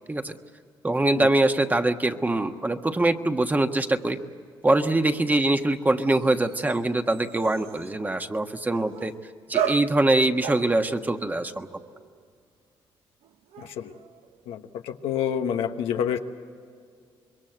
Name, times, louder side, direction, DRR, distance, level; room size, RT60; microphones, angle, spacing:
voice 1, 0.8-4.2 4.6-9.1 9.5-11.7, right 2 dB, 20° right, 6 dB, 1.4 m, -23 dB
sound 1, 6.0-8.0 8.7-9.3 9.5-12.2 13.2-14.5, right 9 dB, 85° right, 1.1 m, -36 dB
voice 2, 13.6-13.9 14.5-16.2, left 9 dB, 85° left, 6 dB, 1.2 m, -28 dB
26.0 x 22.0 x 8.0 m, 2.2 s
cardioid pair, 70°, 10 cm